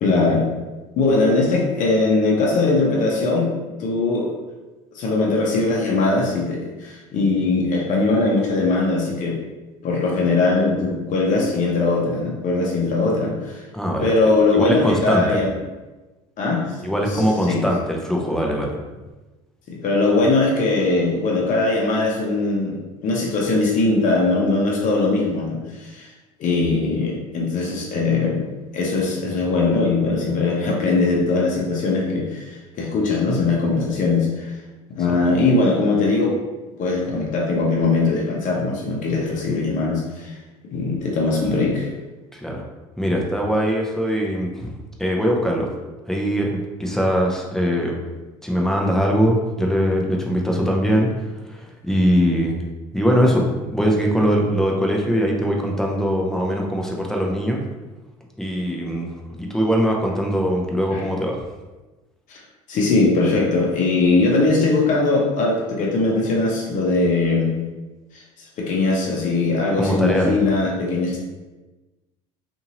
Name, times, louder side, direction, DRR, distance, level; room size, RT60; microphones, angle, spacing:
voice 1, 0.0-0.5 1.0-3.5 3.8-4.3 4.9-9.4 9.8-13.6 14.0-15.5 16.4-16.8 17.1-17.7 19.7-26.1 26.4-34.5 34.9-36.4 36.8-40.3 40.7-41.9 60.9-61.0 62.3-62.4 62.7-67.5 68.1-68.2 68.6-71.2, left 3 dB, 50° left, -2 dB, 0.8 m, -20 dB
voice 2, 13.7-14.1 14.5-15.4 16.8-18.8 42.3-42.6 43.0-44.7 45.0-45.7 46.1-48.0 48.4-51.1 51.4-52.6 52.9-57.6 58.4-59.1 59.4-61.4 69.8-70.4, equal, 5° left, -1 dB, 0.6 m, -21 dB
2.7 x 2.6 x 2.8 m, 1.1 s
hypercardioid pair, 70°, 17 cm